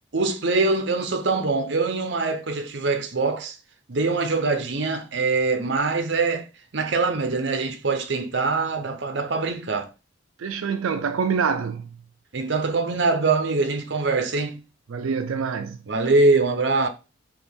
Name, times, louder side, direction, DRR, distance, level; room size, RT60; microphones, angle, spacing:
voice 1, 0.1-3.6 3.9-6.5 6.7-9.9 12.3-14.6 15.9-16.9, right 3 dB, 60° right, 0.7 m, -23 dB
voice 2, 10.4-12.0 14.9-15.8, right 6 dB, 90° right, 0.4 m, -26 dB
4.2 x 3.0 x 3.5 m
head